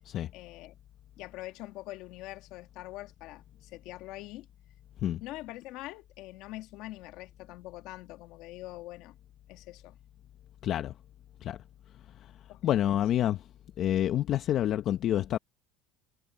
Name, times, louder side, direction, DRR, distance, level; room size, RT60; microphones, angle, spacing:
voice 1, 0.3-0.7 1.2-4.5 5.2-9.2 9.5-10.0 12.5-13.0, left 17 dB, 65° left, 1.9 m, -44 dB
voice 2, 10.6-10.9 11.4-11.6 12.6-13.4 13.8-15.4, left 11 dB, 45° left, 0.8 m, -27 dB
cardioid pair, 130°, 0 cm